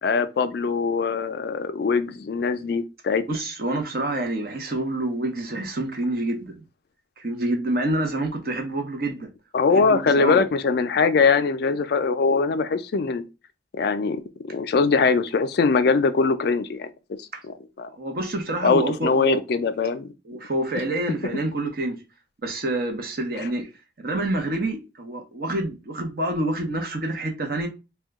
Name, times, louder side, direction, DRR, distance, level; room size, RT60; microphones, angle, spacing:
voice 1, 0.0-3.2 9.5-13.2 13.7-16.9 17.2-17.3 17.8-17.9 18.6-20.1, left 4 dB, 55° left, 0.3 m, -22 dB
voice 2, 3.3-6.6 7.2-9.3 9.7-10.4 18.0-19.4 20.3-22.0 22.4-23.7 24.0-27.7, right 1 dB, 50° right, 0.7 m, -27 dB
2.7 x 2.2 x 3.5 m
head